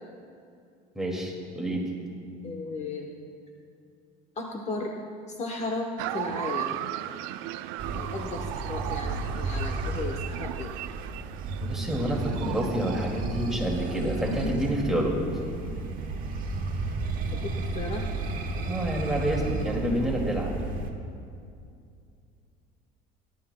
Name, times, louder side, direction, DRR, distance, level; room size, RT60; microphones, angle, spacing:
voice 1, 0.9-1.8 11.6-15.2 18.6-20.7, right 1 dB, ahead, -2 dB, 2.2 m, -28 dB
voice 2, 2.4-3.1 4.4-5.0 5.4-6.8 7.9-10.7 15.3-15.6 17.3-18.1, left 3 dB, 35° left, 1 dB, 1.0 m, -35 dB
sound 1, 6.0-13.3, right 14 dB, 80° right, 0.4 m, -36 dB
sound 2, 7.8-20.9, right 3 dB, 45° right, 1.4 m, -33 dB
18.5 x 11.5 x 2.2 m, 2.4 s
cardioid pair, 115°, 21 cm